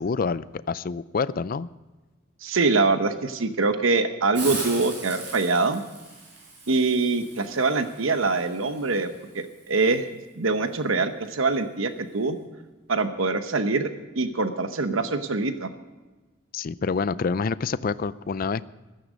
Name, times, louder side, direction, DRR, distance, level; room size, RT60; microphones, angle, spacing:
voice 1, 0.0-1.7 16.5-18.7, left 5 dB, 45° left, 17 dB, 0.4 m, -27 dB
voice 2, 2.4-5.8 6.7-10.1 10.3-12.4 12.9-15.7, right 3 dB, 85° right, 9 dB, 1.0 m, -24 dB
Hiss, 4.3-10.0, right 3 dB, 60° right, 6.3 m, -39 dB
15.5 x 13.5 x 5.1 m, 1.2 s
head